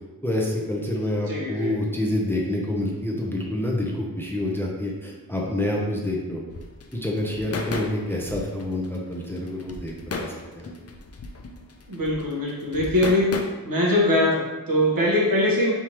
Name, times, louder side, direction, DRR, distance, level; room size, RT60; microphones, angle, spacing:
voice 1, 0.2-6.4 6.9-10.7, left 1 dB, 5° left, -3 dB, 0.7 m, -27 dB
voice 2, 1.3-1.7 11.9-13.4 13.6-15.7, left 1 dB, 75° right, -4 dB, 1.2 m, -22 dB
sound 1, 6.5-13.4, left 3 dB, 45° left, 0.5 m, -34 dB
4.5 x 3.6 x 3.0 m, 1.2 s
wide cardioid pair, 75°, 35 cm